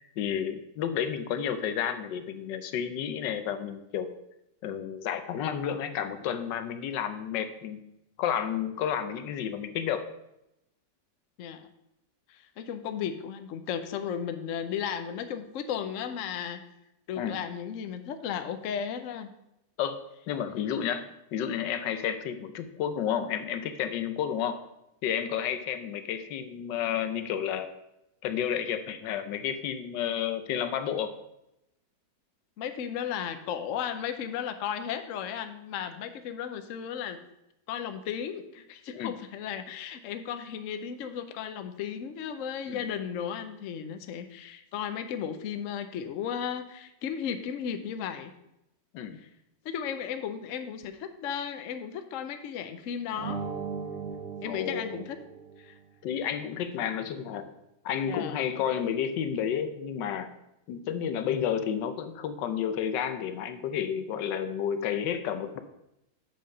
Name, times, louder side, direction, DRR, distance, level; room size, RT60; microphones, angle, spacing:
voice 1, 0.0-4.1 4.6-7.8 8.2-10.1 17.2-17.4 19.8-20.0 20.3-24.6 25.0-27.7 28.2-31.1 38.9-39.2 42.7-42.8 48.9-49.2 54.4-55.0 56.0-57.5 57.8-60.3 60.7-65.6, left 8 dB, 80° left, 10 dB, 1.3 m, -31 dB
voice 2, 12.3-16.6 17.1-19.3 32.6-37.2 37.7-48.3 49.6-53.4 54.4-55.2 55.6-55.7 58.1-58.6, left 8 dB, 65° left, 8 dB, 0.8 m, -35 dB
sound 1, 53.1-55.8, right 5 dB, 55° right, 1.2 m, -38 dB
7.7 x 5.2 x 5.3 m, 0.86 s
omnidirectional pair, 1.9 m